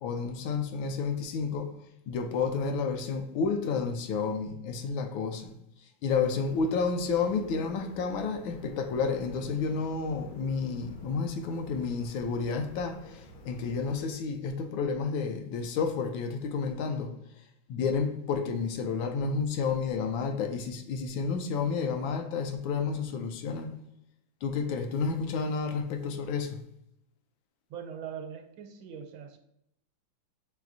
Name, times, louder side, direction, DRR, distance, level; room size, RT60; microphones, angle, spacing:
voice 1, 0.0-1.8 2.1-5.5 6.0-17.1 17.7-23.7 24.4-26.6, left 5 dB, 80° left, 1.3 m, -30 dB
sound 1, 6.4-14.1, left 1 dB, 60° left, 1.1 m, -48 dB
voice 2, 27.7-29.4, right 7 dB, 80° right, 1.4 m, -41 dB
6.0 x 3.3 x 2.5 m
omnidirectional pair, 2.2 m